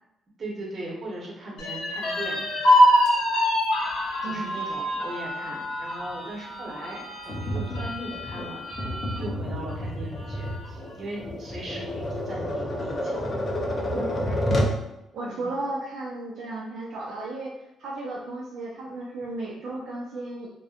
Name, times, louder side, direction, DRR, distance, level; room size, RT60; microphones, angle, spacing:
voice 1, 0.4-2.4 2.9-3.0 4.2-13.4 15.2-15.5, right 1 dB, 40° right, -3 dB, 0.8 m, -39 dB
sound 1, 1.6-9.2 9.7-9.8 10.2-10.8, equal, 90° left, 0.7 m, -25 dB
voice 2, 4.2-4.6 13.9-14.4 15.1-20.5, right 2 dB, 75° right, -3 dB, 0.4 m, -34 dB
Tap, 7.3-14.8, equal, 40° left, 0.5 m, -30 dB
2.6 x 2.1 x 2.4 m, 0.86 s
cardioid pair, 90°, 0 cm